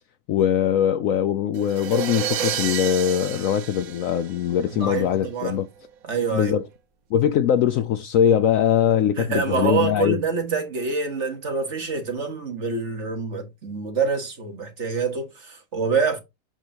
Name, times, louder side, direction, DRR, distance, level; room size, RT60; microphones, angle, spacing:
voice 1, 0.3-5.7 6.3-6.6 7.1-10.2, left 9 dB, 70° left, 0.8 m, -21 dB
sound 1, 1.5-4.8, right 9 dB, 65° right, 1.2 m, -30 dB
voice 2, 4.7-5.6 6.0-6.5 9.2-16.2, right 5 dB, 45° right, 1.7 m, -26 dB
7.3 x 4.9 x 2.8 m
omnidirectional pair, 1.7 m